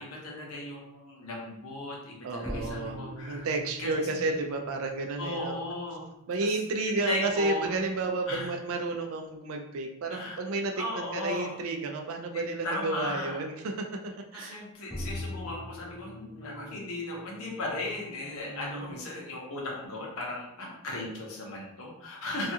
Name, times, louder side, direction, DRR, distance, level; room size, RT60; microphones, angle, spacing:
voice 1, 0.0-3.5 3.8-4.3 5.2-6.1 6.4-6.6 6.9-7.7 8.3-8.5 10.1-10.4 10.8-11.6 12.3-13.4 14.3-22.5, left 2 dB, 70° left, -2 dB, 0.7 m, -36 dB
voice 2, 2.2-3.0 3.3-5.6 6.3-14.6 16.3-16.7 18.4-18.9 22.3-22.4, right 3 dB, 65° right, 4 dB, 0.4 m, -32 dB
sound 1, 2.4-9.2 14.9-18.4, left 1 dB, ahead, 0.4 m, -43 dB
2.3 x 2.3 x 2.7 m, 0.84 s
head